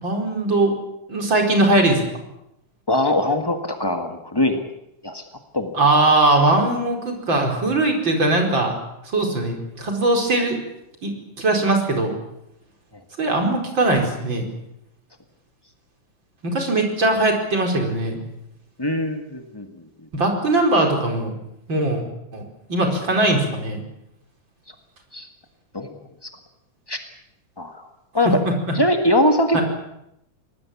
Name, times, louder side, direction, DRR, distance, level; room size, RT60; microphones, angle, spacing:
voice 1, 0.0-0.8 1.1-2.0 5.7-8.7 9.1-10.6 11.0-12.1 13.2-14.4 16.4-18.2 20.1-21.3 21.7-22.0 22.3-22.4 22.7-23.8 28.5-28.6 29.5-29.6, right 2 dB, 35° right, 3 dB, 5.2 m, -20 dB
voice 2, 2.9-4.6 5.0-5.2 5.5-5.8 18.8-19.7 25.1-25.3 25.7-25.9 26.2-26.3 26.9-27.0 27.6-27.9 28.1-28.4 28.7-29.6, left 1 dB, 30° left, 5 dB, 0.4 m, -21 dB
25.0 x 19.0 x 8.6 m, 0.82 s
omnidirectional pair, 3.6 m